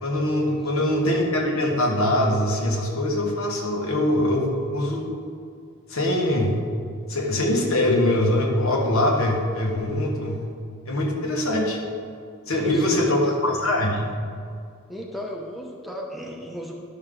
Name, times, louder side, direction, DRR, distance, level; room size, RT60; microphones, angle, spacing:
voice 1, 0.0-5.1 5.9-6.6 7.1-10.4 10.9-11.8 12.5-14.1, left 1 dB, 75° left, 0 dB, 1.4 m, -23 dB
voice 2, 12.5-13.4 14.9-16.8, equal, ahead, -1 dB, 0.7 m, -35 dB
11.0 x 6.4 x 3.8 m, 2.2 s
head